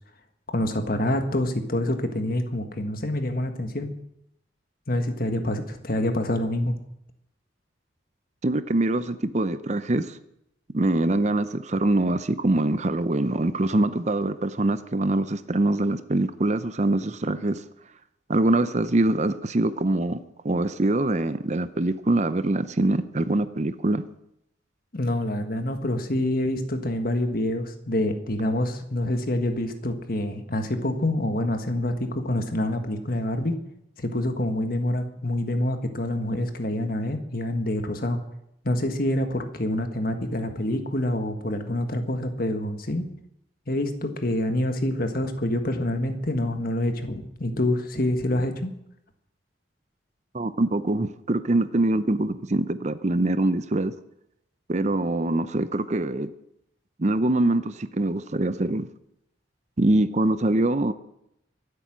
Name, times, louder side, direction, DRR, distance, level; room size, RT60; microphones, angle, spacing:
voice 1, 0.5-3.9 4.9-6.7 24.9-33.6 34.0-38.2 38.6-43.1 43.7-48.7, left 1 dB, 50° left, 7 dB, 1.6 m, -26 dB
voice 2, 8.4-10.1 10.7-17.6 18.3-24.0 50.3-53.9 54.7-56.3 57.0-58.9 59.8-60.9, right 2 dB, 40° right, 13 dB, 0.6 m, -24 dB
24.5 x 8.4 x 6.2 m, 0.79 s
head